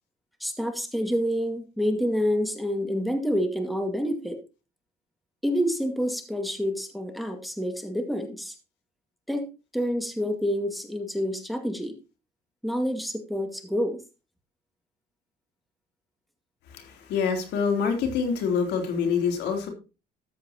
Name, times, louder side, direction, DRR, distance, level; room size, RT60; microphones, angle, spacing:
voice 1, 0.4-4.4 5.4-8.5 9.3-11.9 12.6-14.0, equal, ahead, 6 dB, 2.0 m, -28 dB
voice 2, 16.7-19.7, left 6 dB, 85° left, 4 dB, 3.3 m, -26 dB
13.5 x 8.1 x 2.9 m, 0.30 s
cardioid pair, 110°, 17 cm